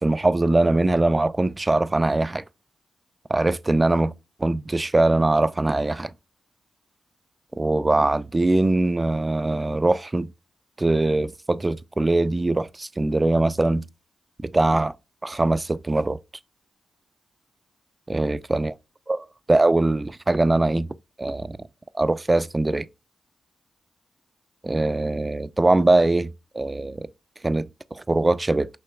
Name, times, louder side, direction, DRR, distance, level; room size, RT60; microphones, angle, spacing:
voice 1, 0.0-2.4 3.3-4.1 4.4-6.1 7.6-10.3 10.8-13.8 14.4-14.9 15.2-16.2 18.1-18.7 19.1-20.9 21.2-21.6 22.0-22.9 24.6-27.1 27.4-28.7, right 2 dB, 30° right, 0.4 m, -22 dB
5.7 x 3.0 x 2.3 m
supercardioid pair, 45°, 0 cm